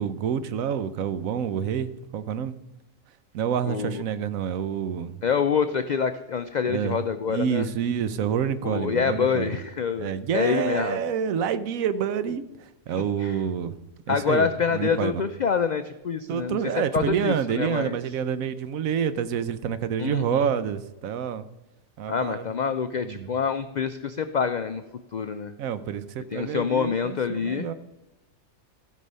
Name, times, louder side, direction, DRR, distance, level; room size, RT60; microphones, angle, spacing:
voice 1, 0.0-2.6 3.3-5.2 6.7-7.0 7.3-9.6 10.0-12.4 12.9-13.7 14.1-15.2 16.3-21.4 22.0-22.4 23.0-23.3 25.6-27.7, right 8 dB, 85° right, 13 dB, 1.2 m, -28 dB
voice 2, 3.6-4.0 5.2-7.7 8.6-11.0 13.0-13.4 14.1-16.6 16.9-17.9 20.0-20.5 22.1-24.8 25.1-25.5 26.3-27.7, left 6 dB, 80° left, 10 dB, 0.4 m, -26 dB
15.0 x 5.4 x 5.4 m, 0.97 s
omnidirectional pair, 1.4 m